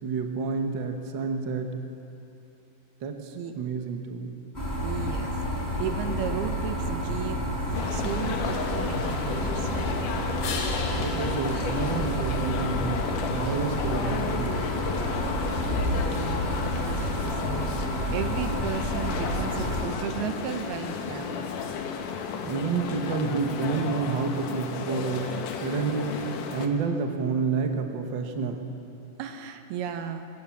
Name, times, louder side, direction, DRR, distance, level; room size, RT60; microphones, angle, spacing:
voice 1, 0.0-1.9 3.0-4.4 11.0-14.7 22.4-26.2 26.5-28.7, right 5 dB, 60° right, 4 dB, 1.2 m, -29 dB
sound 1, 4.5-19.8, equal, 10° left, 5.5 m, -30 dB
voice 2, 4.8-10.1 15.5-21.5 29.2-30.3, right 8 dB, 80° right, 7 dB, 3.1 m, -35 dB
sound 2, 7.7-26.7, left 6 dB, 65° left, 2.6 m, -33 dB
sound 3, 10.4-13.0 18.7-22.7, left 5 dB, 80° left, 3.9 m, -42 dB
23.5 x 18.5 x 7.3 m, 2.9 s
omnidirectional pair, 4.5 m